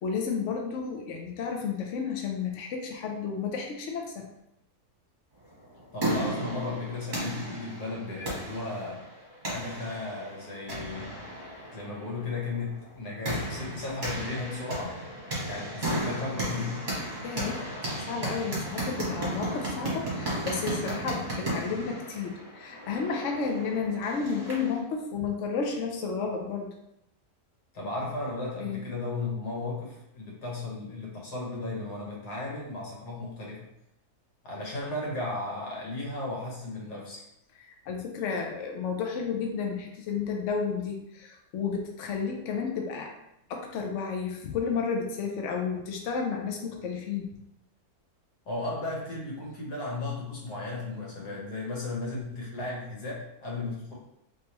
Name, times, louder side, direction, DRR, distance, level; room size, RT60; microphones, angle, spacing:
voice 1, 0.0-4.3 14.1-14.6 17.2-17.7 18.1-26.7 28.6-28.8 37.7-43.1 43.5-47.3, left 5 dB, 65° left, 1 dB, 0.8 m, -32 dB
sound 1, 5.6-24.8, right 1 dB, 30° right, 1.3 m, -35 dB
voice 2, 5.9-9.0 9.5-11.2 11.7-15.0 15.4-16.8 27.7-33.7 34.4-37.2 48.4-53.9, left 2 dB, 90° left, -4 dB, 1.7 m, -35 dB
3.3 x 3.2 x 2.9 m, 0.81 s
omnidirectional pair, 1.6 m